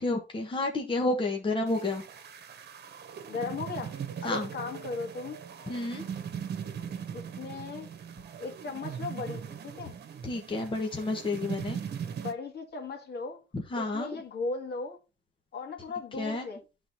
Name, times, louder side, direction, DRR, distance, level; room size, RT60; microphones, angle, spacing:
voice 1, 0.0-2.0 4.2-4.5 5.7-6.1 10.2-11.8 13.5-14.1 16.2-16.5, left 2 dB, 25° left, 1.3 m, -30 dB
sound 1, 1.7-12.3, right 8 dB, 55° right, 1.2 m, -40 dB
voice 2, 3.3-5.4 7.1-7.9 8.4-10.0 12.2-13.4 13.7-15.0 15.5-16.6, left 4 dB, 55° left, 2.2 m, -37 dB
11.0 x 3.9 x 2.7 m
cardioid pair, 90°, 20 cm